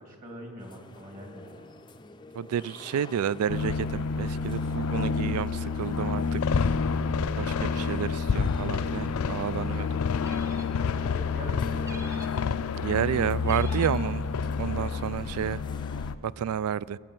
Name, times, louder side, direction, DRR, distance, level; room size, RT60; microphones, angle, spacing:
voice 1, 0.0-1.7 7.5-7.9 10.8-12.2, equal, 40° right, 2.3 m, -43 dB
sound 1, 0.6-16.1, left 2 dB, 20° left, 0.5 m, -49 dB
voice 2, 2.4-6.4 7.4-9.9 12.8-14.2 14.6-15.6 16.2-17.0, right 8 dB, 85° right, 0.3 m, -30 dB
sound 2, 3.5-16.2, left 5 dB, 80° left, 0.4 m, -29 dB
sound 3, 10.2-10.9 11.8-12.5 13.4-14.1, right 1 dB, 15° right, 1.0 m, -46 dB
21.5 x 7.7 x 7.5 m
head